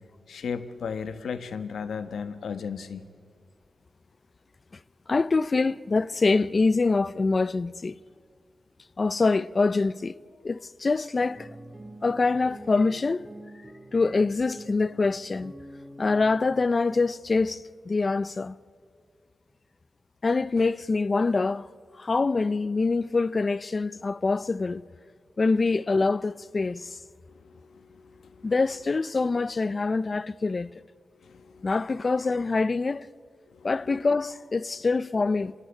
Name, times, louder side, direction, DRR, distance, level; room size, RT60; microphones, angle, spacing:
voice 1, 0.3-3.0 27.3-28.5 31.2-31.7 33.5-33.7, left 6 dB, 85° left, 1.2 m, -36 dB
voice 2, 5.1-8.0 9.0-10.1 10.4-11.5 12.0-13.3 13.9-15.5 16.0-18.6 20.2-21.7 22.0-24.8 25.4-27.0 28.4-30.7 31.6-33.1 33.6-35.5, left 3 dB, 40° left, 0.5 m, -25 dB
sound 1, 11.3-16.7, right 1 dB, 20° right, 2.3 m, -46 dB
25.5 x 17.0 x 10.0 m
cardioid pair, 80°, 0 cm